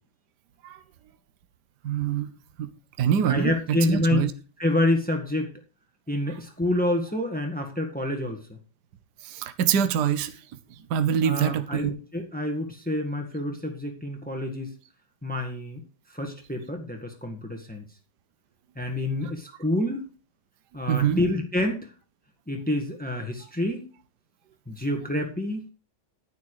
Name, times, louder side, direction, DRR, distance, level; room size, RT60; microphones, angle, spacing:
voice 1, 1.8-2.3 2.6-2.7 3.0-4.3 9.2-10.3 10.9-11.9 20.9-21.2, right 8 dB, 60° right, 1.4 m, -24 dB
voice 2, 3.2-4.2 4.6-5.5 6.1-8.4 11.2-14.7 15.2-15.8 16.1-17.8 18.7-20.1 20.7-21.9 22.5-23.9 24.7-25.6, left 1 dB, 5° left, 1.4 m, -27 dB
10.0 x 9.4 x 4.8 m
omnidirectional pair, 2.2 m